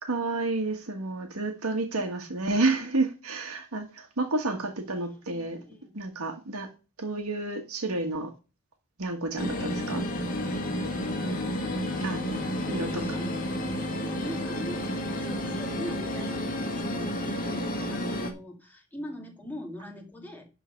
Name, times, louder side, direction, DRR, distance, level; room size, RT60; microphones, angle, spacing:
voice 1, 0.0-5.6 5.9-6.7 7.0-8.3 9.0-10.0 12.0-13.2, right 2 dB, 85° right, 1.5 m, -30 dB
voice 2, 5.3-6.0 7.9-8.2 12.1-14.9 15.2-20.5, left 1 dB, 10° left, 2.2 m, -43 dB
sound 1, 9.4-18.3, left 1 dB, 40° left, 1.9 m, -31 dB
11.5 x 3.9 x 7.1 m
head